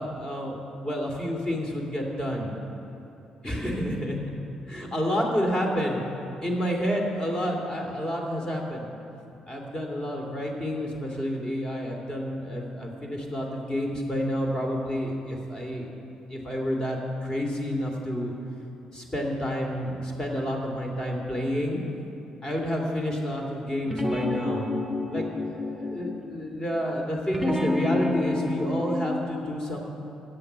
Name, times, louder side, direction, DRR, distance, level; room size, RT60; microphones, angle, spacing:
voice 1, 0.0-2.5 3.4-4.2 4.7-6.0 6.4-8.9 9.5-15.9 16.3-18.3 18.9-21.8 22.4-24.7 25.1-29.8, equal, 25° left, 0 dB, 2.5 m, -29 dB
sound 1, 23.9-26.3 27.3-29.1, left 2 dB, 5° right, 1.0 m, -28 dB
16.0 x 10.0 x 4.6 m, 2.9 s
figure-of-eight pair, 45°, 3 cm